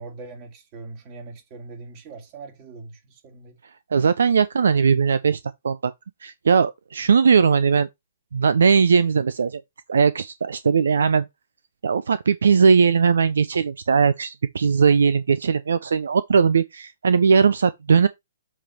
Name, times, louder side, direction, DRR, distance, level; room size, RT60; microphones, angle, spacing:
voice 1, 0.0-3.6, right 3 dB, 35° right, 2.2 m, -41 dB
voice 2, 3.9-5.4 5.6-5.9 6.2-7.9 8.3-9.6 9.9-11.3 11.8-18.1, right 6 dB, 70° right, 0.4 m, -19 dB
7.3 x 3.4 x 4.5 m
hypercardioid pair, 130°, 0 cm